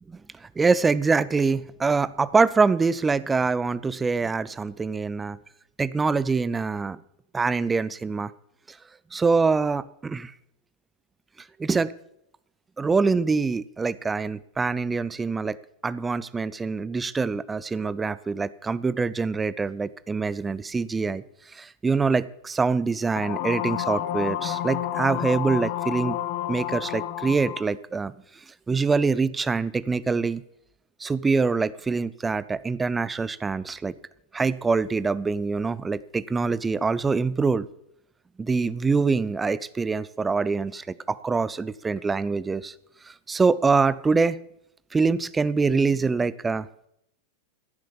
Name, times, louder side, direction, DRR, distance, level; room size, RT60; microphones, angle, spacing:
voice 1, 0.1-5.4 5.8-7.0 7.3-8.3 8.7-8.8 9.1-10.3 11.6-11.9 12.8-15.6 15.8-21.2 21.5-26.2 26.5-28.1 28.7-30.4 31.0-33.9 34.3-37.7 38.4-42.7 43.0-44.4 44.9-46.7, right 4 dB, 15° right, 18 dB, 0.5 m, -24 dB
sound 1, 23.2-27.7, left 13 dB, 45° left, 1.0 m, -30 dB
14.5 x 7.5 x 7.3 m, 0.78 s
figure-of-eight pair, 90°, 0 cm